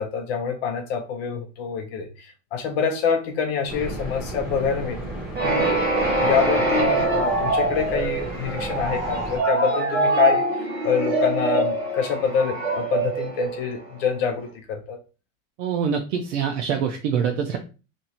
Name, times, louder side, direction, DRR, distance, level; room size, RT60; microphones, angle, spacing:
voice 1, 0.0-5.0 5.4-5.8 6.2-15.0, left 6 dB, 50° left, 4 dB, 0.7 m, -26 dB
sound 1, 3.7-9.4, right 1 dB, 5° right, 1.3 m, -34 dB
sound 2, 5.4-14.1, right 2 dB, 35° right, 1.3 m, -24 dB
voice 2, 15.6-17.6, right 7 dB, 65° right, 3 dB, 0.7 m, -25 dB
3.0 x 2.6 x 4.2 m, 0.33 s
supercardioid pair, 170°, 40 cm